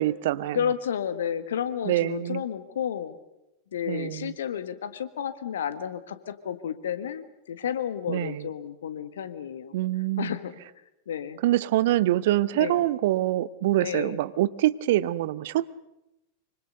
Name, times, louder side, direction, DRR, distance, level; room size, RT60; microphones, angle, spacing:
voice 1, 0.0-0.6 1.8-2.4 3.9-4.3 8.1-8.5 9.7-10.3 11.4-15.7, right 14 dB, 55° right, 18 dB, 0.8 m, -25 dB
voice 2, 0.5-3.1 3.7-9.7 10.2-10.6 11.1-11.4 12.5-12.8 13.8-14.2, left 8 dB, 65° left, 12 dB, 1.6 m, -31 dB
25.0 x 24.5 x 6.7 m, 0.91 s
figure-of-eight pair, 90°, 0 cm